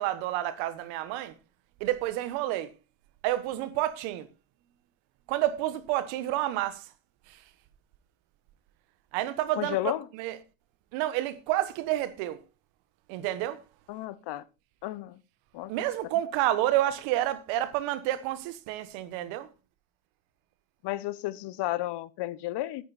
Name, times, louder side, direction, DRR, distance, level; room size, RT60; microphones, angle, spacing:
voice 1, 0.0-1.3 1.8-2.7 3.2-4.3 5.3-6.9 7.3-7.4 9.1-10.4 10.9-12.4 13.1-13.6 15.7-19.5, right 14 dB, 80° right, 1.4 m, -29 dB
voice 2, 9.6-10.1 13.9-14.4 14.8-15.2 15.5-15.7 20.8-22.8, left 16 dB, 60° left, 0.9 m, -32 dB
10.5 x 9.1 x 4.2 m
supercardioid pair, 80°, 46 cm